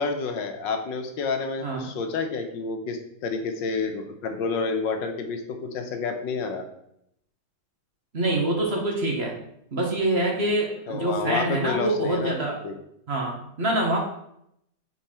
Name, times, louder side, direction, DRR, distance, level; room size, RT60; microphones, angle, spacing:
voice 1, 0.0-6.7 10.9-12.3 12.6-12.7, left 4 dB, 85° left, 5 dB, 1.6 m, -29 dB
voice 2, 8.1-9.3 9.7-12.6 13.1-14.0, right 1 dB, 40° right, -1 dB, 1.3 m, -25 dB
6.8 x 4.5 x 4.3 m, 0.75 s
omnidirectional pair, 2.0 m